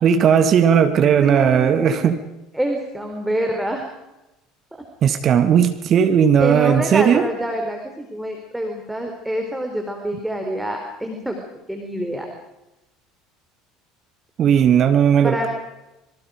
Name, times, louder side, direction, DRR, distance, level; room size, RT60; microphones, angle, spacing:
voice 1, 0.0-2.2 5.0-7.3 14.4-15.5, right 8 dB, 40° right, 9 dB, 1.8 m, -16 dB
voice 2, 1.2-2.1 2.5-3.8 6.4-11.4 11.7-12.3 15.2-15.5, right 1 dB, 5° right, 3 dB, 4.0 m, -26 dB
27.0 x 23.5 x 5.2 m, 0.97 s
figure-of-eight pair, 65°, 0 cm